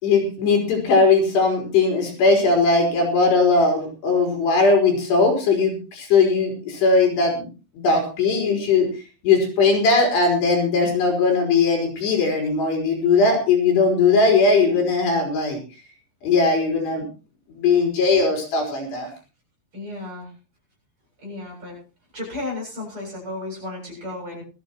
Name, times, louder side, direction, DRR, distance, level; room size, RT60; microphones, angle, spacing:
voice 1, 0.0-7.5 7.8-8.9 9.2-15.6 16.2-17.1 17.5-19.1, left 4 dB, 70° left, 1 dB, 6.2 m, -19 dB
voice 2, 19.7-20.3 21.2-21.8 22.1-24.4, left 2 dB, 30° right, -2 dB, 8.8 m, -33 dB
20.5 x 14.0 x 3.0 m, 0.34 s
omnidirectional pair, 5.1 m